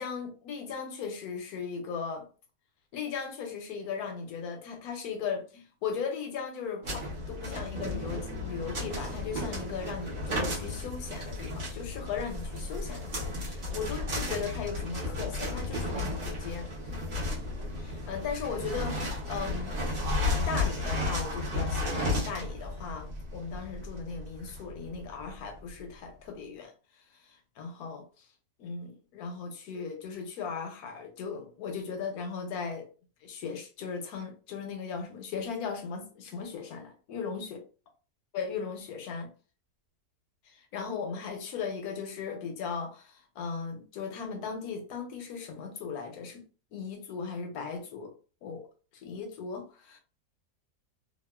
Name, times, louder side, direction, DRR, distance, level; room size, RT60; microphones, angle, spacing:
voice 1, 0.0-2.3 2.9-16.7 17.8-19.8 20.2-28.3 28.6-32.9 33.2-37.5 38.3-39.3 40.4-46.5 46.7-48.1 48.4-48.6 48.9-50.0, left 5 dB, 75° left, 1.0 m, -37 dB
sound 1, 6.8-25.6, left 2 dB, 40° right, 0.9 m, -34 dB
2.9 x 2.3 x 2.2 m
omnidirectional pair, 1.8 m